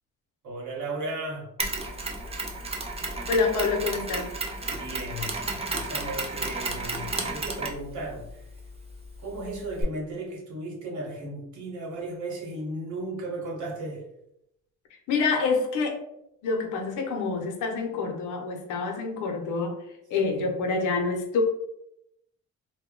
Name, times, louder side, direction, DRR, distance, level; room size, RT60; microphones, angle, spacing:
voice 1, 0.4-1.5 4.7-8.4 9.2-14.0 20.3-20.5, right 2 dB, 75° right, -2 dB, 1.1 m, -35 dB
Mechanisms, 1.6-9.8, right 2 dB, 20° right, 0.5 m, -33 dB
voice 2, 3.3-4.3 15.1-16.0 16.4-19.8 20.1-21.4, left 4 dB, 85° left, 3 dB, 0.6 m, -27 dB
2.1 x 2.0 x 3.6 m, 0.80 s
cardioid pair, 90°, 30 cm